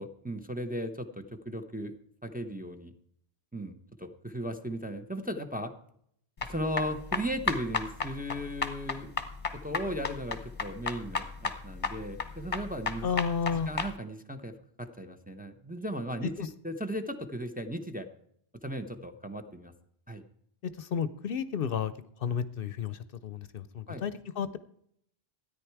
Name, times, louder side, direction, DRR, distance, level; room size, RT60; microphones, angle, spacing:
voice 1, 0.0-1.9 2.2-2.9 3.5-5.7 6.4-9.1 9.5-13.1 13.5-18.1 18.6-19.7 20.1-20.2 23.9-24.0, equal, 10° right, 5 dB, 0.8 m, -36 dB
sound 1, 6.4-13.9, left 4 dB, 35° left, 1.1 m, -33 dB
voice 2, 13.0-13.7 16.4-16.5 20.8-21.9 22.2-24.6, left 7 dB, 65° left, 14 dB, 0.8 m, -32 dB
13.5 x 9.6 x 4.6 m, 0.70 s
omnidirectional pair, 1.1 m